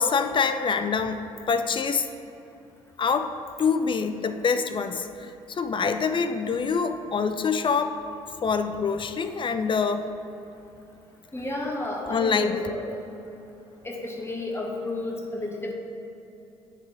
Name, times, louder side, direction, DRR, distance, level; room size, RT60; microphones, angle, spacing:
voice 1, 0.0-2.1 3.0-3.3 3.6-8.0 8.4-10.1 12.1-12.6, left 5 dB, 35° left, 9 dB, 0.4 m, -25 dB
voice 2, 11.3-12.8 13.8-15.7, left 2 dB, 15° left, -1 dB, 1.5 m, -31 dB
9.7 x 3.6 x 3.3 m, 2.9 s
hypercardioid pair, 55°, 15 cm